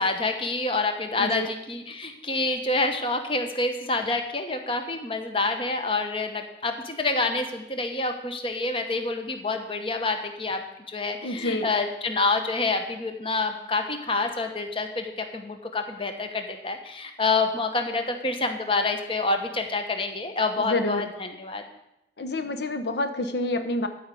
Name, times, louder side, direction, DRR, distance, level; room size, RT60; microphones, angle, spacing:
voice 1, 0.0-21.6, left 3 dB, 30° left, 6 dB, 1.0 m, -27 dB
voice 2, 11.2-11.7 20.6-21.1 22.2-23.9, left 2 dB, 70° left, 6 dB, 0.8 m, -28 dB
12.5 x 5.1 x 8.3 m, 0.88 s
head